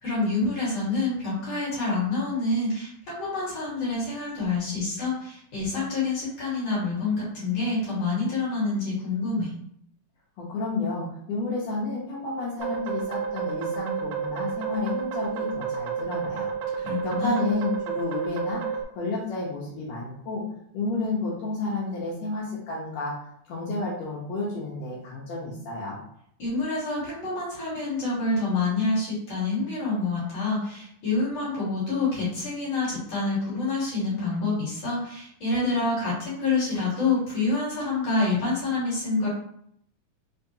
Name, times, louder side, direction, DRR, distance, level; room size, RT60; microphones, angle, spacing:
voice 1, 0.0-9.5 16.8-17.4 26.4-39.3, left 3 dB, 55° left, -7 dB, 2.1 m, -27 dB
voice 2, 10.4-16.5 17.0-18.6 18.9-20.4 20.7-23.1 23.5-26.0, left 3 dB, 80° left, -5 dB, 1.5 m, -31 dB
sound 1, 12.6-18.8, right 7 dB, 80° right, 1.8 m, -31 dB
5.5 x 2.3 x 2.7 m, 0.69 s
omnidirectional pair, 4.1 m